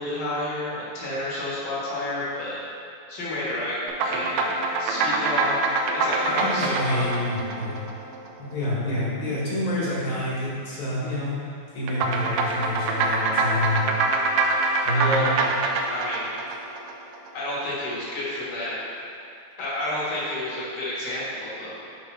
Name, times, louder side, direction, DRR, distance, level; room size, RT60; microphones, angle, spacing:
voice 1, 0.0-2.6 3.1-4.5 4.8-5.6 5.9-7.0 14.6-15.3 15.9-16.3 17.3-18.7 19.6-21.8, left 1 dB, 40° left, -8 dB, 1.7 m, -30 dB
sound 1, 3.9-8.5 11.9-17.3, right 3 dB, 80° right, 2.1 m, -25 dB
voice 2, 6.2-7.8 8.4-11.4 11.7-13.8 14.8-15.5, left 1 dB, 60° left, -8 dB, 2.7 m, -28 dB
5.7 x 5.4 x 4.7 m, 2.6 s
omnidirectional pair, 3.9 m